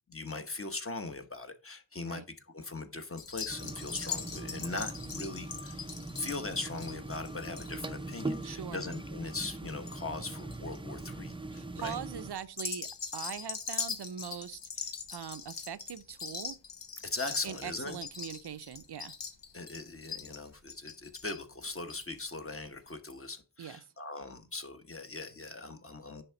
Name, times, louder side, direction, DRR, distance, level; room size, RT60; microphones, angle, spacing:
voice 1, 0.1-5.9 6.2-12.0 17.0-18.0 19.5-26.2, left 3 dB, 30° left, 1.1 m, -40 dB
sound 1, 3.2-10.0 10.2-10.8 11.3-11.6 12.4-22.2 22.5-22.6 22.9-23.0, left 5 dB, 75° left, 1.5 m, -41 dB
sound 2, 3.5-12.3, right 2 dB, 10° right, 0.6 m, -41 dB
voice 2, 8.4-8.8 11.5-16.6 17.4-19.1 23.6-23.8, right 8 dB, 65° right, 0.7 m, -42 dB
10.0 x 3.6 x 5.7 m
wide cardioid pair, 85°, 42 cm